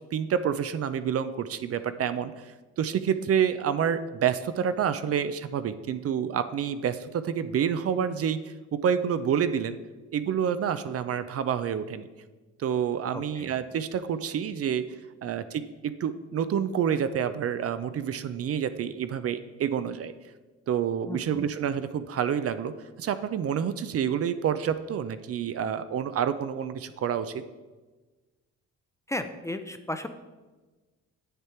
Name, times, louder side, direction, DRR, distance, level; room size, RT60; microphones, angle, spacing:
voice 1, 0.1-9.8 10.1-12.1 12.6-14.9 15.2-20.1 20.7-22.7 23.0-27.4, right 8 dB, 50° right, 12 dB, 0.5 m, -28 dB
voice 2, 13.1-13.5 21.1-21.5 29.1-30.1, left 1 dB, 10° left, 8 dB, 0.5 m, -35 dB
8.1 x 6.7 x 4.4 m, 1.3 s
cardioid pair, 90°, 30 cm